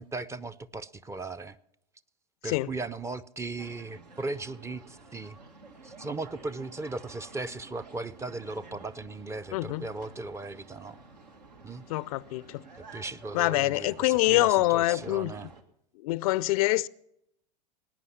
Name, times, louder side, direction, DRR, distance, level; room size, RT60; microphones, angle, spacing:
voice 1, 0.0-1.6 2.4-5.4 5.8-11.0 11.6-11.8 12.9-15.5, right 3 dB, 15° right, 0.6 m, -37 dB
sound 1, 3.6-15.6, right 3 dB, 80° right, 2.1 m, -50 dB
voice 2, 9.5-9.9 11.9-12.6 13.3-15.3 16.0-16.9, left 19 dB, 60° left, 0.5 m, -25 dB
19.0 x 9.7 x 5.8 m
hypercardioid pair, 90°, 21 cm